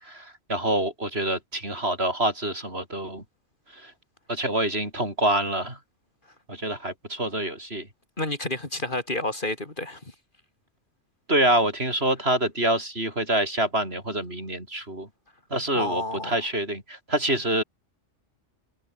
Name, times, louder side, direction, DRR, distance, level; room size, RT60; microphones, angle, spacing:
voice 1, 0.0-3.2 3.7-3.9 4.3-5.8 6.5-7.9 11.3-15.1 15.5-17.6, right 1 dB, 55° right, 7.8 m, -26 dB
voice 2, 8.2-10.0 15.7-16.3, left 2 dB, 45° left, 3.2 m, -30 dB
omnidirectional pair, 1.2 m